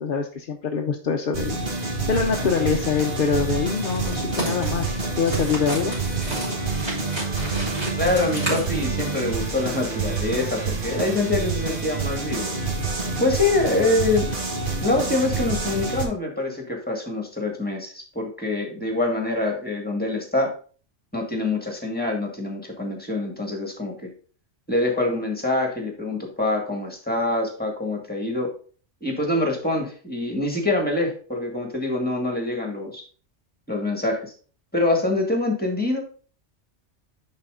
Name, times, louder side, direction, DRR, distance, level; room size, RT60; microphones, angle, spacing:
voice 1, 0.0-6.0, left 5 dB, 55° left, 2 dB, 0.8 m, -25 dB
sound 1, 1.3-16.0, right 3 dB, 45° right, 1.6 m, -28 dB
sound 2, 3.7-9.3, right 1 dB, 30° right, 3.1 m, -32 dB
voice 2, 8.0-12.5 13.2-14.3 14.8-20.5 21.1-24.1 24.7-28.5 29.0-33.0 33.7-34.3 34.7-36.0, left 2 dB, 10° left, 1 dB, 1.9 m, -25 dB
10.0 x 4.2 x 3.7 m, 0.40 s
omnidirectional pair, 1.2 m